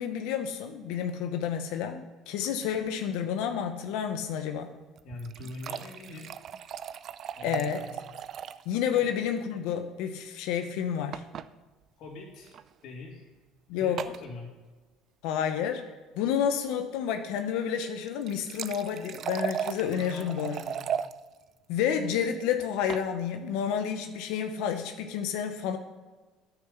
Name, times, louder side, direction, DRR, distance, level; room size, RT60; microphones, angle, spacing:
voice 1, 0.0-4.7 7.4-7.9 8.7-11.2 13.7-14.0 15.2-15.8 16.2-20.6 21.7-25.8, left 8 dB, 80° left, 7 dB, 0.9 m, -30 dB
voice 2, 5.0-6.3 7.4-8.0 9.0-9.1 12.0-12.6 12.8-13.3 13.7-14.5 19.9-20.9, left 2 dB, 60° left, -2 dB, 3.1 m, -43 dB
sound 1, 5.0-8.7 9.0-9.1 9.3-9.4 11.1-11.5 12.4-12.6 14.0-14.2 18.0-21.1 22.6-23.1, right 8 dB, 50° right, 0.4 m, -36 dB
10.0 x 6.1 x 7.0 m, 1.3 s
cardioid pair, 115°, 0 cm